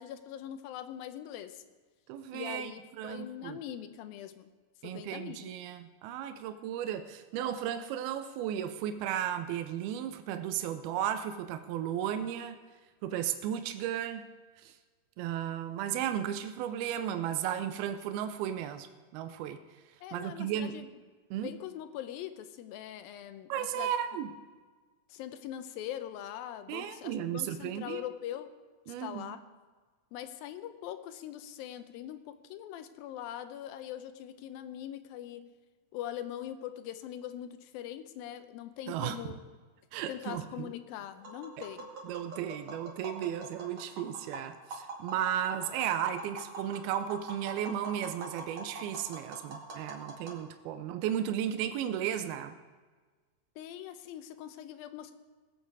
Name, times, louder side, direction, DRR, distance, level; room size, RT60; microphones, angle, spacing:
voice 1, 0.0-1.6 2.3-4.5 4.8-5.5 20.0-20.9 21.4-23.9 25.1-28.5 29.0-29.4 30.1-35.5 35.9-39.4 40.1-41.9 50.3-50.4 53.6-55.1, left 11 dB, 80° left, 10 dB, 2.4 m, -42 dB
voice 2, 2.1-2.7 3.0-3.6 4.8-12.6 13.0-14.2 14.6-14.7 15.2-18.9 19.1-19.6 20.1-20.7 21.3-21.5 23.5-24.3 26.7-28.0 28.9-29.4 38.9-39.2 39.9-40.7 41.6-41.7 42.0-52.5, right 10 dB, 85° right, 9 dB, 2.6 m, -34 dB
Tap, 41.1-50.4, right 2 dB, 50° right, 3.0 m, -45 dB
20.0 x 8.0 x 4.7 m, 1.4 s
omnidirectional pair, 4.3 m